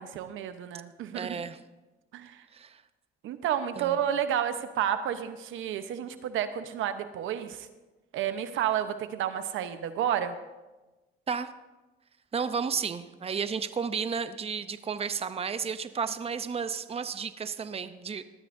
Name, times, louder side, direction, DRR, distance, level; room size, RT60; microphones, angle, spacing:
voice 1, 0.0-1.4 2.1-2.4 3.2-7.7 8.1-10.4, right 9 dB, 85° right, 9 dB, 0.9 m, -31 dB
voice 2, 1.1-1.6 2.5-2.8 3.8-4.0 11.3-11.5 12.3-18.2, right 6 dB, 30° right, 11 dB, 0.7 m, -32 dB
19.5 x 13.5 x 2.7 m, 1.1 s
cardioid pair, 90°, 20 cm